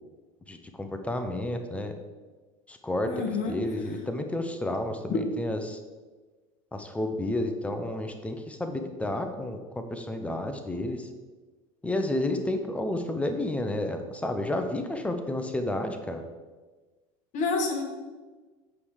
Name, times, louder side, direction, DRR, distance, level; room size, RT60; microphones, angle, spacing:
voice 1, 0.5-1.9 2.7-5.8 6.7-11.1 11.8-16.2, left 1 dB, 10° left, 6 dB, 1.0 m, -31 dB
voice 2, 3.0-3.6 5.1-5.2 17.3-17.8, left 4 dB, 50° left, 3 dB, 1.8 m, -28 dB
8.5 x 5.2 x 4.9 m, 1.3 s
supercardioid pair, 100°, 16 cm